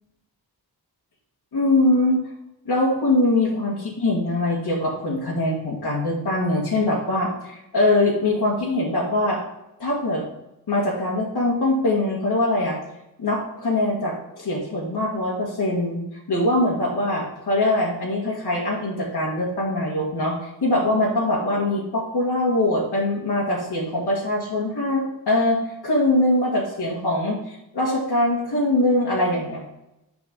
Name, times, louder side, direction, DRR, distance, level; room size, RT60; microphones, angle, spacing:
voice 1, 1.5-2.2 2.7-9.4 9.8-10.2 10.7-12.8 13.2-16.0 16.3-29.6, left 1 dB, 80° left, -4 dB, 1.9 m, -22 dB
7.0 x 5.2 x 3.7 m, 0.88 s
cardioid pair, 70°, 39 cm